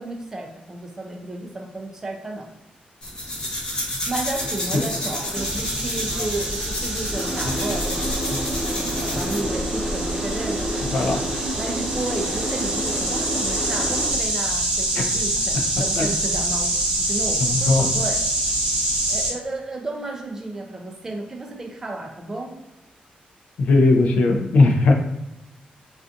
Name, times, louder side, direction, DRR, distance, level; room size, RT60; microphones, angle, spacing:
voice 1, 0.0-2.5 4.1-8.0 8.7-10.7 11.6-18.2 19.1-22.5, right 2 dB, 15° right, 0 dB, 0.3 m, -32 dB
sound 1, 3.0-9.5, left 1 dB, 35° left, 0.6 m, -30 dB
Boat Water vehicle, 4.3-14.1, right 1 dB, 75° right, 1.0 m, -31 dB
sound 2, 5.3-19.3, right 1 dB, 40° right, 0.8 m, -26 dB
voice 2, 23.6-24.9, left 3 dB, 70° left, 2 dB, 0.4 m, -17 dB
2.5 x 2.3 x 2.5 m, 0.94 s
wide cardioid pair, 180°, 3 cm